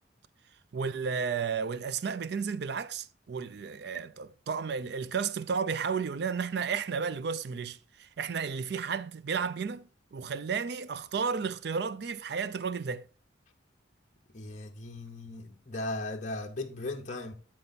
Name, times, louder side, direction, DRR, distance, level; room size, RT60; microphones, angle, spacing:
voice 1, 0.7-13.0, right 6 dB, 55° right, 0.4 m, -33 dB
voice 2, 14.3-17.3, left 2 dB, 40° left, 0.8 m, -37 dB
9.6 x 4.4 x 4.0 m
head